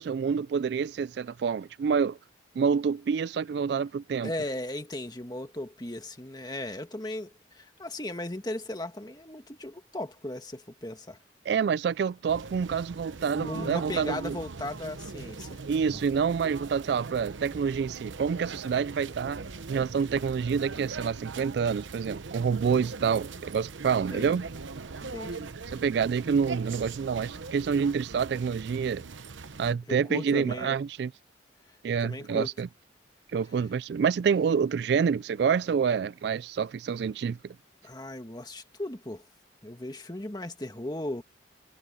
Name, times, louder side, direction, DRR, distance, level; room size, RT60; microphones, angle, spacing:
voice 1, 0.0-2.2 2.6-4.3 11.5-14.4 15.7-19.4 19.7-24.4 25.7-29.0 29.6-31.1 31.8-32.7 33.3-37.6, right 6 dB, 60° right, 0.3 m, -27 dB
voice 2, 4.2-11.2 13.3-15.6 15.9-16.0 24.1-24.4 25.0-25.5 29.9-30.7 32.0-32.5 37.8-39.2 39.6-41.2, left 1 dB, 20° left, 1.7 m, -37 dB
sound 1, 12.3-29.7, right 4 dB, 85° right, 0.9 m, -41 dB
head